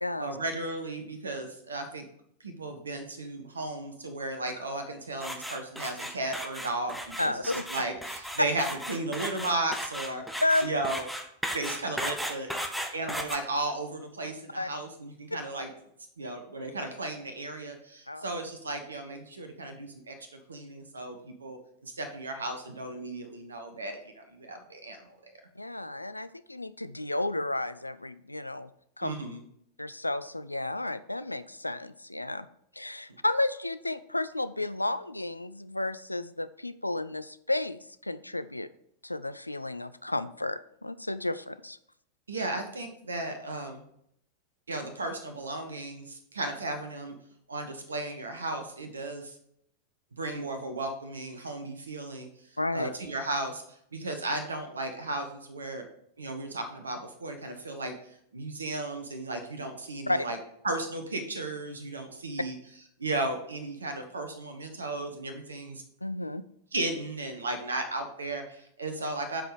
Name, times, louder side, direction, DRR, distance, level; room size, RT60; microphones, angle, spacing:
voice 1, 0.2-2.0 2.4-11.0 11.5-12.5 12.9-15.7 16.2-25.3 29.0-29.4 42.3-43.8 44.7-47.1 47.5-49.4 50.1-52.3 52.7-55.9 56.2-57.9 58.3-60.4 60.6-62.6 63.0-65.8 66.7-69.4, right 2 dB, 75° right, 7 dB, 1.1 m, -35 dB
sound 1, 5.2-13.4, equal, ahead, 0.9 m, -35 dB
voice 2, 7.2-7.7 8.4-8.5 10.4-10.7 14.5-14.7 18.1-18.3 25.6-28.7 29.0-29.1 29.8-32.5 32.7-38.7 39.0-41.8 52.6-52.9 60.1-60.3 66.0-66.4, left 2 dB, 85° left, 14 dB, 0.4 m, -32 dB
7.7 x 5.0 x 4.9 m, 0.70 s
figure-of-eight pair, 90°, 0 cm